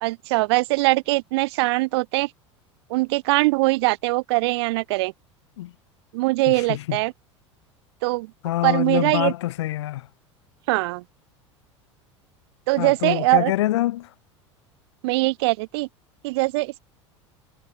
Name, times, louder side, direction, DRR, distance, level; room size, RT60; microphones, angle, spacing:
voice 1, 0.0-2.3 2.9-5.1 6.1-7.1 8.0-8.3 8.6-9.3 10.7-11.0 12.7-13.5 15.0-15.9 16.2-16.8, right 23 dB, 55° right, 1.2 m, -22 dB
voice 2, 6.5-7.0 8.4-10.1 12.8-14.1, left 15 dB, 65° left, 0.6 m, -25 dB
figure-of-eight pair, 75°, 16 cm